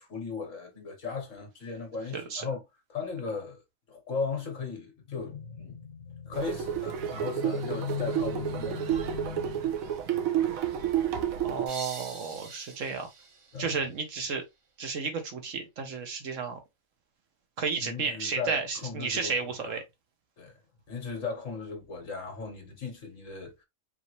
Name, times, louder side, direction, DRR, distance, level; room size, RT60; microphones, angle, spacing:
voice 1, 0.0-2.6 2.9-3.6 3.9-9.7 13.5-13.9 17.8-19.8 20.4-20.6 20.9-23.6, left 5 dB, 65° left, 1.9 m, -36 dB
voice 2, 2.1-2.5 11.4-13.1 13.6-14.4 14.8-16.6 17.6-19.8, right 5 dB, 65° right, 1.3 m, -32 dB
sound 1, 6.3-11.7, right 10 dB, 85° right, 1.2 m, -30 dB
sound 2, 11.7-14.4, right 4 dB, 45° right, 0.4 m, -45 dB
5.1 x 2.7 x 3.2 m
omnidirectional pair, 1.4 m